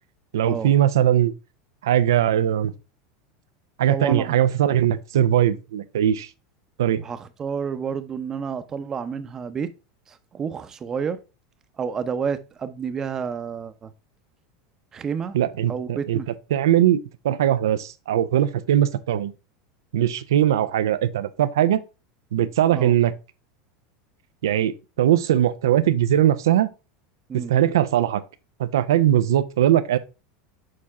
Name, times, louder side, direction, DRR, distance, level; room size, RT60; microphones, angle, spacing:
voice 1, 0.3-1.3 1.8-2.7 3.8-6.3 6.8-7.0 15.3-16.2 16.5-17.0 17.2-19.3 19.9-21.8 22.3-23.1 24.4-26.7 27.5-28.2 28.6-30.0, right 11 dB, 90° right, 0.5 m, -20 dB
voice 2, 3.9-4.4 7.0-9.7 10.1-11.2 11.8-13.9 14.9-15.4 15.7-16.3 22.7-22.9 27.3-27.5, right 6 dB, 25° right, 0.7 m, -30 dB
6.6 x 4.2 x 3.6 m
supercardioid pair, 120°, 2 cm